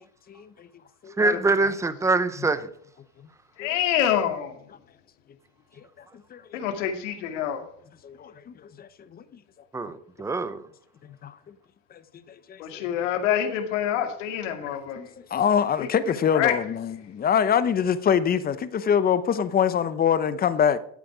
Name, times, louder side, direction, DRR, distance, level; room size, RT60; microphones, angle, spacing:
voice 1, 0.3-0.7 1.0-1.1 3.6-3.7 6.3-6.4 8.0-9.2 11.2-11.3 12.5-12.8 15.0-20.8, left 8 dB, 25° left, 0.8 m, -24 dB
voice 2, 1.2-2.7 9.7-10.6, right 3 dB, 10° right, 0.7 m, -24 dB
voice 3, 3.6-4.6 6.5-7.6 12.6-15.1 15.8-15.9 16.3-16.5, left 10 dB, 85° left, 2.2 m, -26 dB
12.5 x 8.3 x 4.9 m
supercardioid pair, 125°, 36 cm